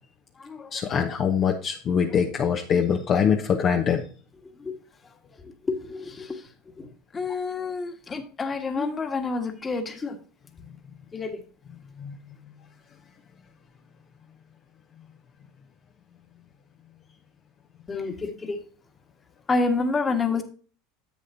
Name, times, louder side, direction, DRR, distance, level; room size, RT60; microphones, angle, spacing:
voice 1, 0.7-4.1 12.0-12.2, left 7 dB, 40° left, 3 dB, 1.0 m, -23 dB
voice 2, 5.7-6.4 6.8-6.9 7.1-10.2 11.1-11.4 17.9-18.6 19.5-20.4, left 3 dB, 25° left, 5 dB, 1.6 m, -28 dB
10.5 x 7.7 x 2.7 m, 0.41 s
hypercardioid pair, 90°, 0 cm